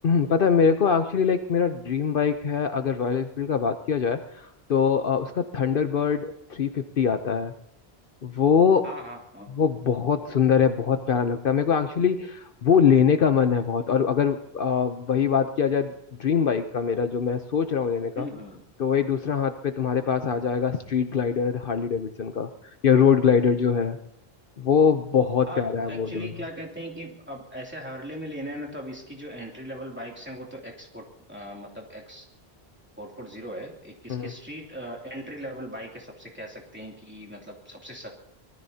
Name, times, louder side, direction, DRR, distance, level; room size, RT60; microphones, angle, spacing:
voice 1, 0.0-7.5 8.2-8.8 9.6-15.9 16.2-18.3 18.8-22.5 22.8-24.0 24.6-26.3 34.1-34.3, left 7 dB, 60° left, 7 dB, 0.9 m, -23 dB
voice 2, 8.8-9.5 18.1-18.6 25.5-32.3 33.0-38.1, equal, 10° right, -2 dB, 2.8 m, -39 dB
24.5 x 19.5 x 2.8 m, 0.78 s
omnidirectional pair, 1.1 m